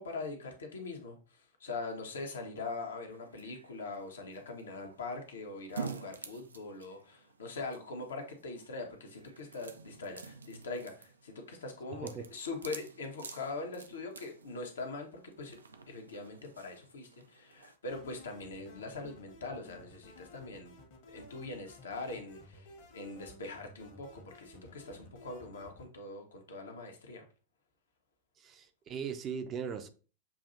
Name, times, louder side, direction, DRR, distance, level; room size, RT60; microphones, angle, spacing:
voice 1, 0.0-15.6 15.9-20.8 21.1-27.2, left 3 dB, 70° left, 1.1 m, -42 dB
sound 1, 3.1-17.8, right 5 dB, 75° right, 0.5 m, -49 dB
sound 2, 17.9-25.9, left 2 dB, 50° left, 1.3 m, -55 dB
voice 2, 28.4-29.9, right 7 dB, 30° right, 0.6 m, -39 dB
6.9 x 2.7 x 2.7 m
figure-of-eight pair, 90°, 0 cm